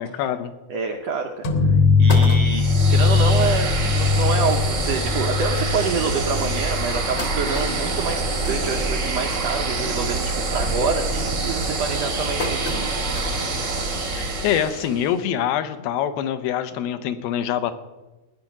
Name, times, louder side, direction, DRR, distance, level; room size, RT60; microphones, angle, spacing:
voice 1, 0.0-0.5 14.2-17.7, left 10 dB, 80° left, 10 dB, 2.7 m, -25 dB
voice 2, 0.7-12.9, right 5 dB, 90° right, 3 dB, 1.4 m, -27 dB
sound 1, 1.0-1.1 1.5-1.6 1.8-2.9 3.5-3.6 3.8-3.9 4.3-4.4 5.2-5.3 5.8-5.9 6.6-9.5 9.8-10.2 10.5-10.9 11.5-13.5 14.0-14.1 15.3-15.4, left 2 dB, 40° left, 0.9 m, -34 dB
sound 2, 1.4-7.0, left 4 dB, 60° left, 2.1 m, -20 dB
sound 3, 2.4-15.1, right 3 dB, 55° right, 0.8 m, -26 dB
17.0 x 10.0 x 5.9 m, 1.1 s
omnidirectional pair, 4.2 m